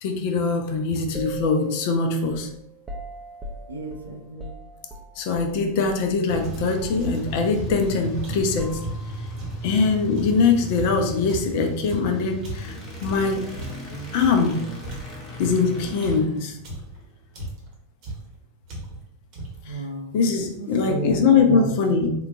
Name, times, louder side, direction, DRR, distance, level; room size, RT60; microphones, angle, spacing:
voice 1, 0.0-2.5 5.2-8.9 9.6-13.4 14.1-14.7 15.4-16.6 19.7-19.8 20.1-22.1, left 4 dB, 45° left, 4 dB, 0.4 m, -22 dB
sound 1, 1.1-5.6 5.8-6.1 6.3-9.3, right 2 dB, 20° right, 0.4 m, -39 dB
voice 2, 3.7-4.5 19.7-20.2 20.6-21.7, right 2 dB, 75° right, 2 dB, 0.5 m, -31 dB
sound 2, 6.3-17.4, equal, 25° left, 0.8 m, -36 dB
sound 3, 6.4-9.7 10.2-14.5 14.8-17.0 17.3-17.8 18.0-18.4 18.7-19.1 19.3-19.7, right 2 dB, 40° right, 0.9 m, -37 dB
3.6 x 2.3 x 2.4 m, 0.76 s
figure-of-eight pair, 90°, 0 cm